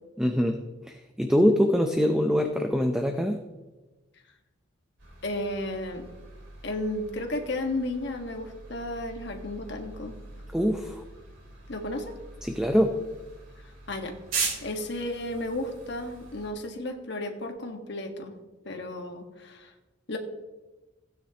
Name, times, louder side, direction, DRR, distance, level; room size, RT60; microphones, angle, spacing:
voice 1, 0.2-0.6 0.9-3.4 10.5-11.0 12.4-13.0, equal, 5° right, 4 dB, 0.6 m, -24 dB
sound 1, 5.0-16.5, right 4 dB, 90° right, 3.8 m, -40 dB
voice 2, 5.2-6.0 6.6-10.1 11.7-12.1 13.6-14.1 14.6-18.3 18.6-19.7 20.1-20.2, left 1 dB, 60° left, 4 dB, 1.5 m, -33 dB
16.0 x 9.3 x 2.9 m, 1.1 s
head